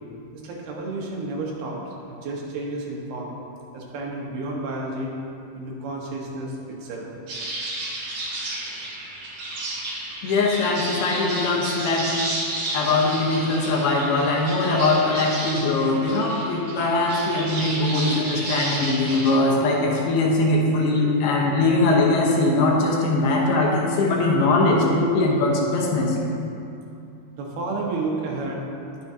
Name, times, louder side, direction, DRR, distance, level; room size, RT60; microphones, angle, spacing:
voice 1, 0.3-1.8 2.1-3.4 3.7-5.1 5.5-7.1 19.4-19.8 27.4-28.6, right 2 dB, 80° right, -3 dB, 3.4 m, -31 dB
sound 1, 7.3-19.4, right 1 dB, 60° right, 3.8 m, -32 dB
voice 2, 10.2-12.1 12.7-26.2, left 2 dB, 80° left, -1 dB, 3.1 m, -21 dB
20.5 x 6.8 x 2.8 m, 2.6 s
omnidirectional pair, 4.5 m